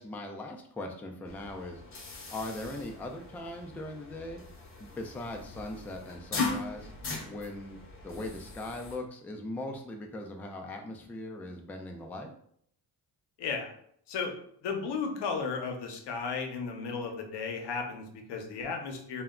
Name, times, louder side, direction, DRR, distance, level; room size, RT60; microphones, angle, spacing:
voice 1, 0.0-1.8 2.3-4.4 4.8-6.9 7.3-7.8 8.0-12.3, left 2 dB, 5° left, 2 dB, 0.3 m, -40 dB
sound 1, 1.2-9.0, left 3 dB, 30° left, 0.7 m, -39 dB
voice 2, 13.4-13.7 14.1-14.3 14.6-19.2, left 5 dB, 75° left, 3 dB, 0.7 m, -34 dB
2.2 x 2.1 x 3.5 m, 0.65 s
cardioid pair, 75°, 42 cm